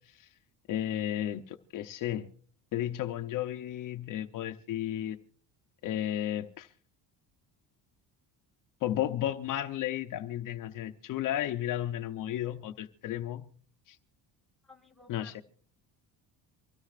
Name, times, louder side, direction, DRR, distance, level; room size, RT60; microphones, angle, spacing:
voice 1, 0.7-2.3 2.7-5.2 5.8-6.7 8.8-13.5 13.9-14.0 15.1-15.4, left 12 dB, 55° left, 0.8 m, -33 dB
voice 2, 14.6-15.4, left 3 dB, ahead, 1.8 m, -55 dB
24.5 x 16.5 x 2.5 m
cardioid pair, 145°, 39 cm